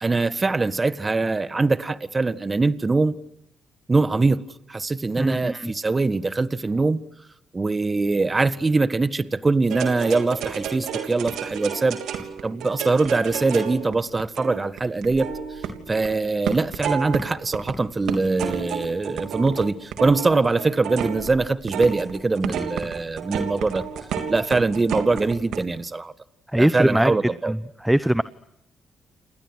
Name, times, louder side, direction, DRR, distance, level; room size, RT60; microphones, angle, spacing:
voice 1, 0.0-3.2 3.9-4.4 4.7-7.0 7.5-12.0 12.4-15.3 15.9-23.8 24.3-26.1 26.6-27.5, right 3 dB, 30° right, 14 dB, 1.6 m, -22 dB
voice 2, 5.2-5.7 26.5-27.1 27.4-28.2, right 1 dB, 5° right, 15 dB, 1.0 m, -21 dB
sound 1, 9.7-16.1 16.4-17.7 18.1-25.6, right 7 dB, 70° right, 3.2 m, -31 dB
29.5 x 28.5 x 6.4 m, 0.81 s
hypercardioid pair, 45°, 0 cm